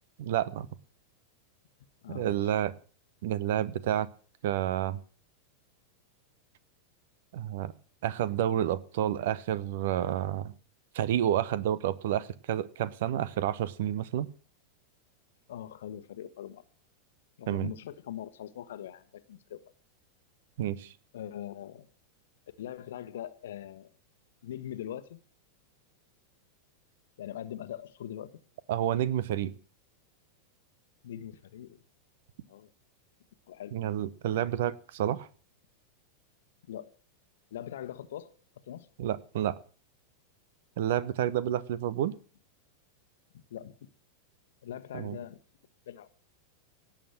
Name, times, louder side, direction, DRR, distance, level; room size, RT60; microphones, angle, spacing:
voice 1, 0.2-0.7 2.1-2.7 3.2-4.1 4.4-5.0 7.3-7.7 8.0-10.5 10.9-14.3 17.5-17.7 20.6-20.9 28.7-29.5 33.7-35.3 39.0-39.6 40.8-42.1 44.9-45.2, right 11 dB, 55° right, 0.9 m, -29 dB
voice 2, 2.0-2.5 15.5-16.6 17.4-19.6 21.1-21.9 22.6-23.9 24.4-25.2 27.2-28.3 31.0-31.8 32.5-32.7 33.5-33.8 36.7-36.9 37.5-38.3 38.7-38.9 43.3-43.7 44.6-45.4 45.9-46.1, left 11 dB, 60° left, 1.2 m, -41 dB
18.0 x 7.6 x 7.7 m
figure-of-eight pair, 90°, 0 cm